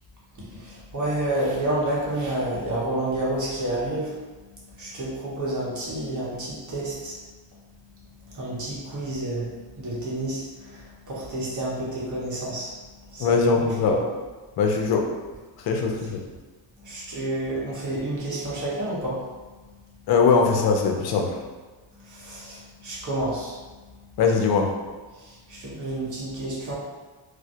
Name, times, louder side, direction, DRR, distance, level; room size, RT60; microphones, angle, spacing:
voice 1, 0.4-4.2 4.5-7.2 8.2-12.7 13.1-14.0 16.8-19.3 22.0-23.6 25.2-26.7, right 1 dB, 40° right, -5 dB, 0.9 m, -30 dB
voice 2, 13.2-14.0 14.6-15.0 15.6-16.2 20.1-21.4 24.2-24.7, left 5 dB, 55° left, 2 dB, 0.5 m, -21 dB
2.2 x 2.1 x 2.7 m, 1.3 s
cardioid pair, 105°, 45 cm